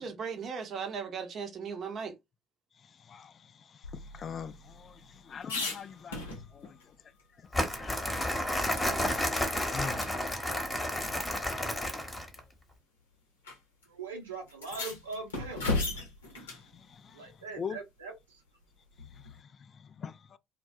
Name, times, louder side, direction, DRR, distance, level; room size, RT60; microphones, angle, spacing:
voice 1, 0.0-2.1, right 6 dB, 45° right, 0.7 m, -37 dB
voice 2, 3.0-6.8 7.5-8.7 9.0-10.2 16.5-17.8 19.1-20.4, left 6 dB, 40° left, 0.3 m, -44 dB
sound 1, 3.8-6.8 7.2-7.3 7.6-9.1 9.4-9.6 10.0-10.1 11.2-11.3 12.2-12.4 13.4-13.6 13.8-13.9 14.5-16.7 19.0-19.4, left 3 dB, 80° left, 0.7 m, -37 dB
Crumpling crinkling, 7.5-12.4, left 1 dB, 15° left, 0.9 m, -31 dB
voice 3, 13.9-16.1 17.1-18.4, right 4 dB, 80° right, 0.8 m, -42 dB
2.2 x 2.2 x 2.6 m
figure-of-eight pair, 55°, 0 cm